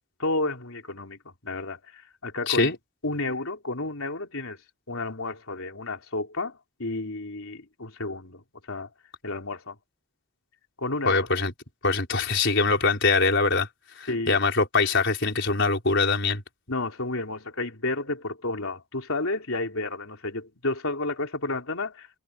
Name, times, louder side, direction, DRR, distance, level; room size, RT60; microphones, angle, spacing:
voice 1, 0.2-2.7 3.0-4.6 4.9-8.4 8.7-8.9 9.2-9.8 10.8-11.3 14.1-14.4 16.7-22.2, left 2 dB, 75° left, 3.8 m, -31 dB
voice 2, 2.5-2.8 11.1-11.5 11.8-13.7 14.0-16.4, left 3 dB, 55° left, 5.4 m, -23 dB
head